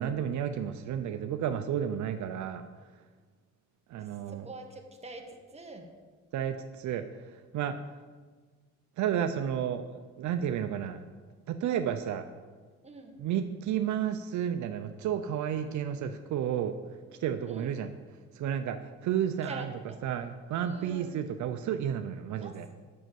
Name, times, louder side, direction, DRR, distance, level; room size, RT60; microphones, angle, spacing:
voice 1, 0.0-2.6 3.9-4.5 6.3-7.0 7.5-7.8 9.0-11.0 11.5-12.2 13.2-16.8 17.2-17.9 18.3-19.7 20.0-22.7, right 9 dB, 75° right, 8 dB, 0.6 m, -31 dB
voice 2, 3.9-5.9 12.8-13.2 17.4-17.8 19.1-20.0 20.5-21.2 22.3-22.8, right 2 dB, 20° right, 3 dB, 1.6 m, -46 dB
7.8 x 6.4 x 7.6 m, 1.4 s
cardioid pair, 90°, 30 cm